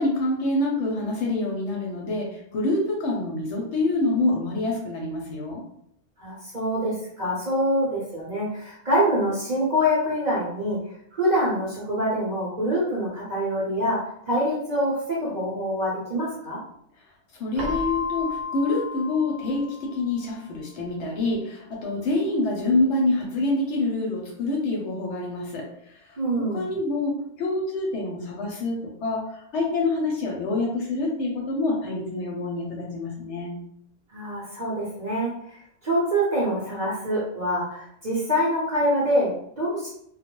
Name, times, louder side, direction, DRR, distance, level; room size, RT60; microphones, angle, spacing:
voice 1, 0.0-5.6 17.4-25.7 26.0-26.2 26.5-33.6, left 2 dB, 65° left, -1 dB, 0.8 m, -26 dB
voice 2, 6.2-10.8 11.1-16.6 26.2-26.6 34.1-35.3 35.8-39.9, equal, 45° right, -7 dB, 0.6 m, -25 dB
Keyboard (musical), 17.6-20.3, left 4 dB, 80° right, 0.4 m, -33 dB
2.3 x 2.0 x 2.9 m, 0.70 s
omnidirectional pair, 1.4 m